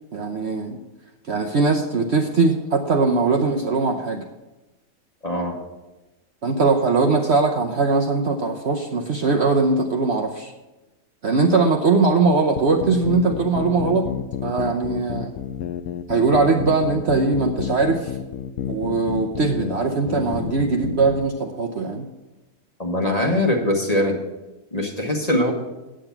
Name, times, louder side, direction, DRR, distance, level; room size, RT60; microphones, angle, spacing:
voice 1, 0.1-0.8 1.3-4.2 6.4-10.5 11.2-14.1 14.4-15.3 16.1-18.2 18.7-22.1, right 3 dB, 50° right, 2 dB, 0.9 m, -20 dB
voice 2, 5.2-5.6 22.8-24.2 24.7-25.5, left 1 dB, 25° left, 1 dB, 1.4 m, -22 dB
sound 1, 12.6-21.2, left 9 dB, 65° left, 0.9 m, -30 dB
8.9 x 8.9 x 5.8 m, 1.1 s
omnidirectional pair, 1.6 m